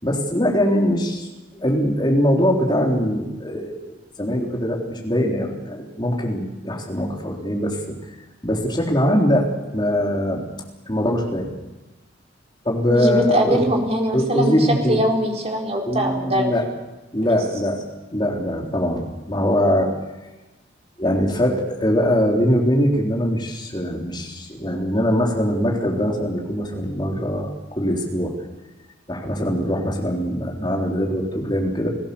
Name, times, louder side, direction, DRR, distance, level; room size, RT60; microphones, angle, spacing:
voice 1, 0.0-1.3 1.5-3.8 4.2-7.9 8.4-10.4 10.9-11.5 12.6-13.6 14.1-15.0 15.9-16.6 17.1-17.8 18.1-19.9 21.0-28.3 29.1-31.9, equal, 25° left, 0 dB, 3.9 m, -22 dB
voice 2, 12.9-14.5 14.9-16.5, equal, 35° right, 1 dB, 4.2 m, -21 dB
29.5 x 17.5 x 7.1 m, 1.1 s
head